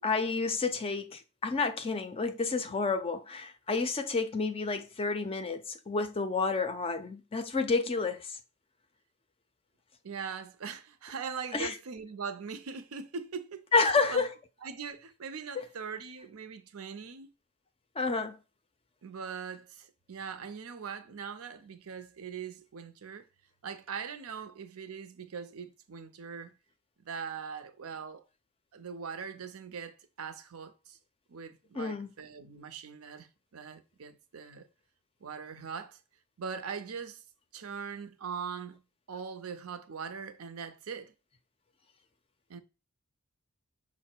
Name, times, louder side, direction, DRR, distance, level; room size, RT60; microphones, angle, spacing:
voice 1, 0.0-8.4 11.5-11.8 13.7-14.4 15.5-15.7 18.0-18.4 31.7-32.1, left 4 dB, 25° left, 0.4 m, -30 dB
voice 2, 10.0-14.2 14.6-17.3 19.0-23.3 23.6-26.5 27.0-28.3 28.7-31.0 31.3-34.7 35.2-36.0 36.4-37.2 37.5-38.8 39.1-41.1 42.5-42.6, right 6 dB, 80° right, 0.6 m, -41 dB
5.6 x 2.1 x 4.4 m
head